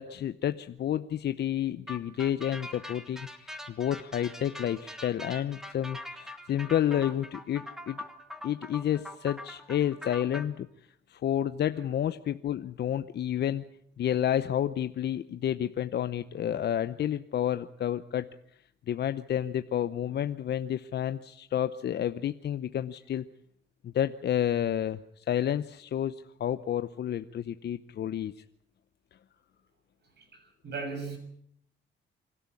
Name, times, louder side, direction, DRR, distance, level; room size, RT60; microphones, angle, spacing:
voice 1, 0.0-8.0 8.4-10.7 11.1-13.6 14.0-18.3 18.9-23.2 23.8-28.3, left 10 dB, 60° left, 11 dB, 0.8 m, -30 dB
sound 1, 1.9-10.4, left 1 dB, ahead, 2.6 m, -43 dB
voice 2, 30.0-31.2, right 4 dB, 60° right, 5 dB, 7.3 m, -38 dB
26.0 x 12.5 x 9.7 m, 0.71 s
cardioid pair, 90°, 20 cm